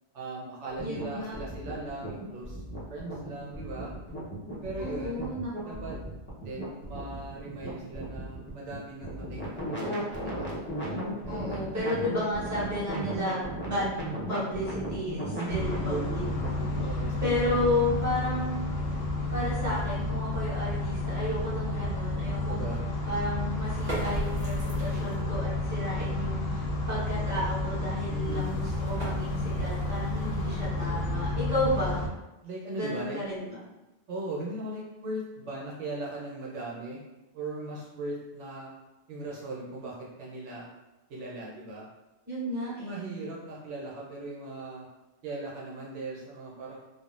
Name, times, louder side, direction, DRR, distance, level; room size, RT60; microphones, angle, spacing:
voice 1, 0.1-2.6 2.9-3.9 4.6-5.3 5.6-6.0 6.4-10.5 11.2-11.6 15.4-16.1 16.8-17.7 22.5-22.9 28.1-28.5 32.4-33.2 34.1-37.0 37.3-38.7 39.1-40.7 41.1-41.9 42.5-44.9 45.2-46.8, right 2 dB, 75° right, -4 dB, 0.9 m, -39 dB
sound 1, 0.8-16.9, right 1 dB, 15° left, 0.4 m, -36 dB
voice 2, 0.8-1.4 4.8-5.9 11.3-14.0 14.3-16.2 16.5-16.6 17.2-18.7 19.3-22.7 23.1-32.0 32.7-33.6 42.3-43.2, left 1 dB, 15° right, -10 dB, 1.1 m, -32 dB
sound 2, 15.5-32.1, left 2 dB, 90° left, 0.9 m, -31 dB
sound 3, 23.7-25.3 28.0-31.0, equal, 45° right, 1.2 m, -40 dB
3.5 x 2.1 x 2.3 m, 1.0 s
omnidirectional pair, 1.3 m